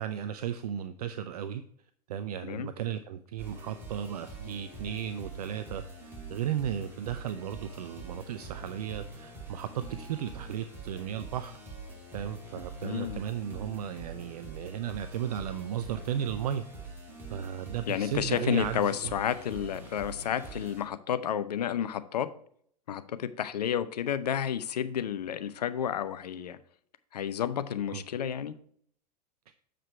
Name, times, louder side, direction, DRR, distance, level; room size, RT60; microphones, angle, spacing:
voice 1, 0.0-1.6 2.1-11.6 12.1-16.6 17.3-19.1 27.9-28.0, right 9 dB, 65° right, 10 dB, 0.5 m, -35 dB
sound 1, 3.4-20.8, right 3 dB, 10° right, 2.4 m, -45 dB
voice 2, 12.8-13.2 17.9-22.3 22.9-26.6 27.1-28.5, left 9 dB, 75° left, 14 dB, 0.6 m, -31 dB
7.7 x 5.0 x 4.5 m, 0.62 s
figure-of-eight pair, 90°, 21 cm